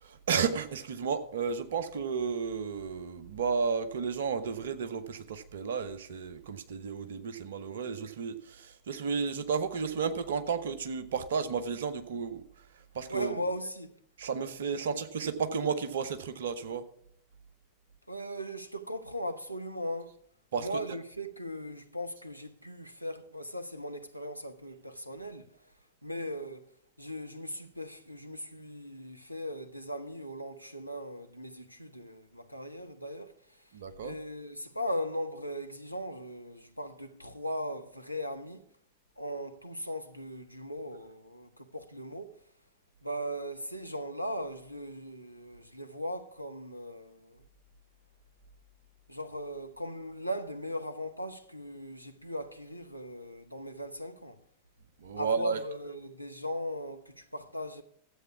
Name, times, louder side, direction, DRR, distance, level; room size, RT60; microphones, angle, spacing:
voice 1, 0.0-12.4 12.9-13.4 14.2-16.8 20.5-20.7 33.7-34.1 55.0-55.6, right 5 dB, 60° right, 1.0 m, -32 dB
voice 2, 13.1-14.0 18.1-20.2 20.5-25.6 26.0-26.7 27.0-38.7 39.2-42.4 43.0-47.4 49.1-54.4 55.2-57.8, equal, 90° left, 0.8 m, -38 dB
13.0 x 8.1 x 5.9 m
figure-of-eight pair, 90°, 0 cm